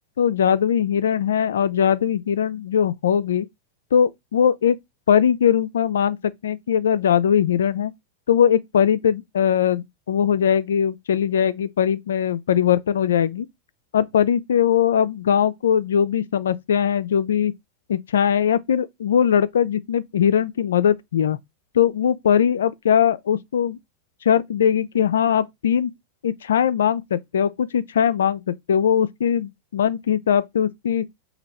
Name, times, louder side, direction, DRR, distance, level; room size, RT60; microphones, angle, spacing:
voice 1, 0.2-3.5 3.9-4.8 5.1-7.9 8.3-13.5 13.9-17.5 17.9-21.4 21.7-23.8 24.3-25.9 26.2-31.1, left 8 dB, 65° left, 0.3 m, -20 dB
3.0 x 2.7 x 4.1 m
figure-of-eight pair, 90°, 0 cm